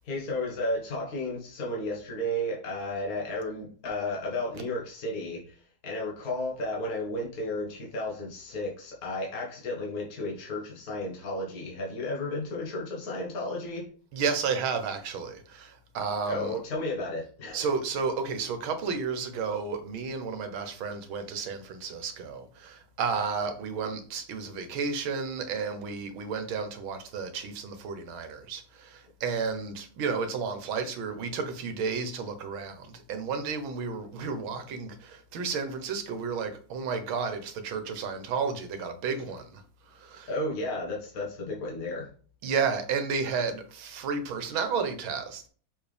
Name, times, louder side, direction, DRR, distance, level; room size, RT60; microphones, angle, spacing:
voice 1, 0.0-13.8 16.3-17.7 40.3-42.1, left 1 dB, 45° left, 1.9 m, -33 dB
voice 2, 14.1-16.5 17.5-39.6 39.9-40.3 42.4-45.5, right 5 dB, 75° right, 1.8 m, -32 dB
6.3 x 4.6 x 3.4 m
omnidirectional pair, 2.3 m